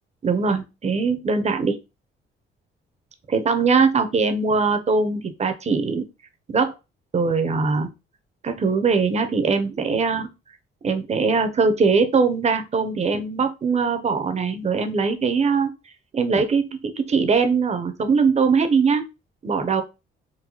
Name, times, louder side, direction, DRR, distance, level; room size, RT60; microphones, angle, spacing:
voice 1, 0.2-1.8 3.3-6.1 6.5-6.7 7.1-7.9 8.4-10.3 10.8-15.7 16.1-19.1 19.4-19.8, right 5 dB, 35° right, 8 dB, 0.6 m, -21 dB
3.9 x 2.1 x 2.9 m, 0.27 s
cardioid pair, 90°, 20 cm